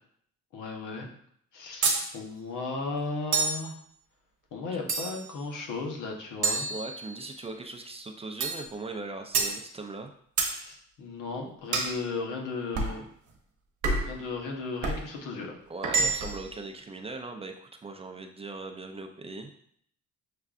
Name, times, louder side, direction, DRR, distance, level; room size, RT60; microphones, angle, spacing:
voice 1, 0.5-1.1 1.5-3.7 4.5-6.7 10.4-13.1 14.0-15.6, left 3 dB, 85° left, 1 dB, 0.9 m, -35 dB
sound 1, 1.8-2.1 3.3-3.7 4.9-5.3 6.4-7.3 8.4-8.7 9.3-9.6 10.4-10.6 11.7-12.0 12.8-13.0 13.8-14.2 14.8-15.0 15.8-16.4, right 4 dB, 70° right, 0.9 m, -28 dB
voice 2, 6.7-10.1 15.7-19.5, right 3 dB, 20° right, 4 dB, 0.4 m, -39 dB
6.5 x 2.3 x 2.4 m, 0.66 s
cardioid pair, 90°, 30 cm